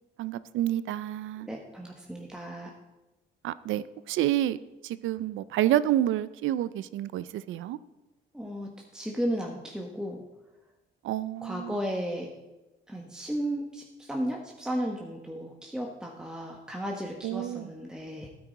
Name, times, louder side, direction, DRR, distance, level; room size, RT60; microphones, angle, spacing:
voice 1, 0.2-1.5 3.4-4.6 4.8-7.8 11.0-11.8 17.2-17.7, right 13 dB, 80° right, 16 dB, 0.4 m, -29 dB
voice 2, 1.4-2.7 8.3-10.2 11.4-12.3 12.9-18.3, equal, 5° right, 0 dB, 1.4 m, -34 dB
12.5 x 9.7 x 4.0 m, 1.0 s
cardioid pair, 90°, 20 cm